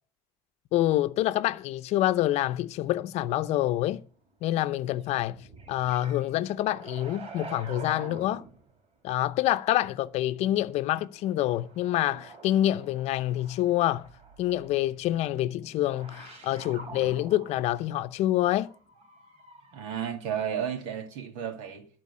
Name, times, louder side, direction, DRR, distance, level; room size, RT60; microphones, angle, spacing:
voice 1, 0.7-4.0 4.4-8.4 9.0-14.1 14.4-18.7, left 14 dB, 60° left, 0.7 m, -27 dB
sound 1, 4.9-8.8 10.9-20.0, right 3 dB, 50° right, 4.3 m, -47 dB
voice 2, 19.7-21.9, right 8 dB, 85° right, 2.5 m, -33 dB
13.0 x 4.6 x 8.4 m
cardioid pair, 130°, 12 cm